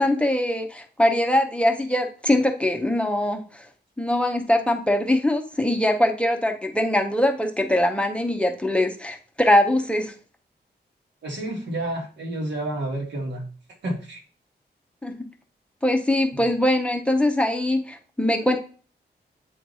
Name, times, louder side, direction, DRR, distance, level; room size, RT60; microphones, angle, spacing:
voice 1, 0.0-3.6 4.0-10.1 15.0-15.2 15.8-18.6, left 1 dB, 5° left, 3 dB, 0.8 m, -22 dB
voice 2, 11.2-13.4 13.8-14.2 16.3-16.5, right 1 dB, 90° right, 0 dB, 1.7 m, -30 dB
8.5 x 3.2 x 4.0 m, 0.39 s
wide cardioid pair, 125°, 18 cm